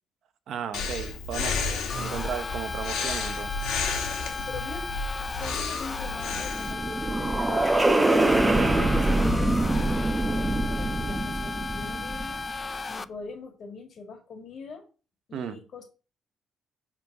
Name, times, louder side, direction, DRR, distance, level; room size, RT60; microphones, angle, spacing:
voice 1, 0.5-1.6 2.0-3.8 8.5-8.8 15.3-15.6, right 8 dB, 70° right, 0.8 m, -35 dB
Breathing, 0.7-6.7, left 4 dB, 85° left, 1.8 m, -32 dB
sound 1, 1.9-13.0, left 4 dB, 30° left, 0.4 m, -35 dB
voice 2, 4.3-4.9 5.3-8.2 8.8-12.4 12.9-14.8 15.3-15.8, left 4 dB, 60° left, 1.8 m, -42 dB
sound 2, 6.1-12.6, right 2 dB, 15° right, 0.9 m, -24 dB
5.6 x 3.8 x 5.8 m
cardioid pair, 90°, 0 cm